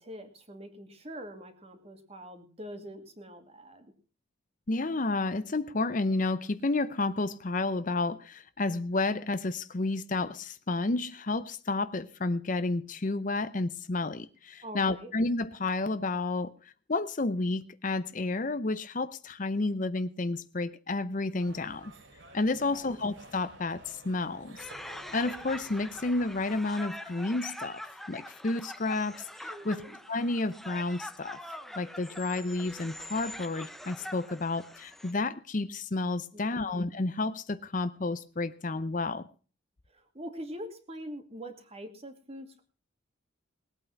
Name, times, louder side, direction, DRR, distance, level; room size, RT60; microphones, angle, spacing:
voice 1, 0.0-3.9 14.6-15.1 22.5-23.0 29.5-30.0 36.3-36.7 39.9-42.6, equal, 30° right, 2.3 m, -44 dB
voice 2, 4.7-21.9 22.3-27.8 28.1-29.8 30.1-31.4 31.8-39.3, left 2 dB, 40° left, 0.7 m, -31 dB
sound 1, 21.4-26.6, right 2 dB, 70° right, 3.0 m, -52 dB
sound 2, 24.6-35.1, equal, ahead, 0.7 m, -44 dB
19.5 x 8.8 x 5.8 m
head